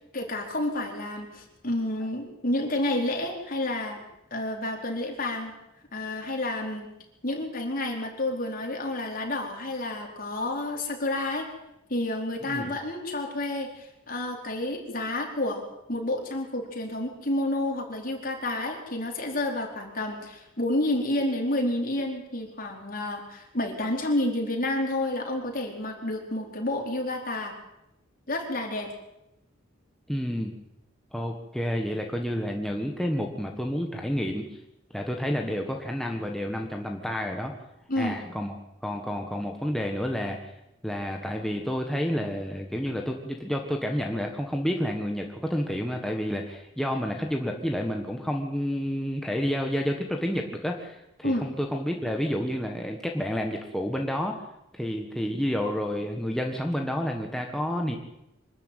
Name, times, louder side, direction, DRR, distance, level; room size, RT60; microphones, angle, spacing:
voice 1, 0.0-4.0 4.3-5.5 5.9-6.9 7.2-11.5 11.9-15.6 15.9-27.5 28.3-28.9 37.9-38.2 51.2-51.5, left 1 dB, 45° left, 1 dB, 4.5 m, -30 dB
voice 2, 30.1-30.5 31.1-34.4 34.9-37.5 38.0-38.5 38.8-40.5 40.8-54.5 54.7-58.0, equal, ahead, 1 dB, 1.5 m, -30 dB
25.0 x 13.0 x 9.2 m, 0.89 s
head